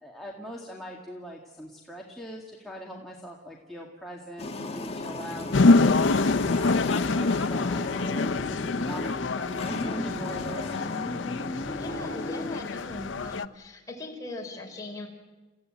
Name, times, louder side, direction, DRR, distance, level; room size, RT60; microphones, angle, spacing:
voice 1, 0.0-7.9 8.3-10.7, equal, ahead, -3 dB, 2.1 m, -41 dB
sound 1, 4.4-12.6, left 2 dB, 35° left, 1.6 m, -35 dB
sound 2, 5.5-13.5, left 3 dB, 75° left, 0.7 m, -26 dB
sound 3, 5.6-6.8 7.6-8.7 9.6-10.7 11.6-12.2 12.9-13.5, equal, 70° right, 2.6 m, -44 dB
voice 2, 11.8-15.1, left 2 dB, 20° left, 0 dB, 4.4 m, -40 dB
29.0 x 15.5 x 9.0 m, 1.3 s
head